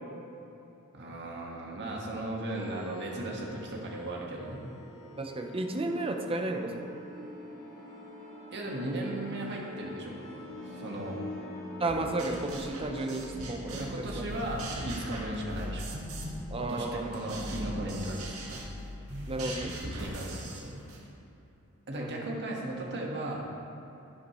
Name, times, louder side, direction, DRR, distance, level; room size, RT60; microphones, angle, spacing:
voice 1, 0.9-4.6 8.5-10.2 10.8-11.2 13.8-15.8 16.6-18.6 19.8-20.8 21.9-23.4, right 1 dB, 55° right, -2 dB, 1.6 m, -36 dB
sound 1, 2.5-19.0, left 1 dB, 15° left, 1.7 m, -44 dB
voice 2, 5.2-6.9 11.8-14.3 16.5-17.1 19.3-19.7 20.1-20.2 21.9-22.2, right 2 dB, 25° right, 3 dB, 0.7 m, -33 dB
sound 2, 11.9-14.0 14.3-16.4 16.7-21.0, right 1 dB, 75° right, 1.8 m, -41 dB
10.5 x 9.7 x 3.1 m, 3.0 s
head